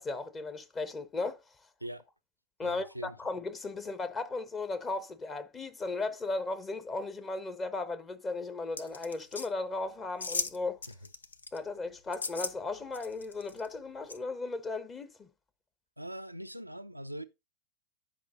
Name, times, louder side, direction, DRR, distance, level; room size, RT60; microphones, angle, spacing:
voice 1, 0.0-1.4 2.6-10.8 11.5-15.3, left 3 dB, 20° left, 1.2 m, -36 dB
voice 2, 2.6-3.2 16.0-17.2, right 1 dB, 90° right, 0.6 m, -41 dB
sound 1, 8.8-9.5 10.2-10.6 10.8-11.6 12.1-12.5 12.9-13.7 14.1-14.2, left 4 dB, 75° left, 0.7 m, -36 dB
10.5 x 5.5 x 3.9 m
figure-of-eight pair, 90°, 0 cm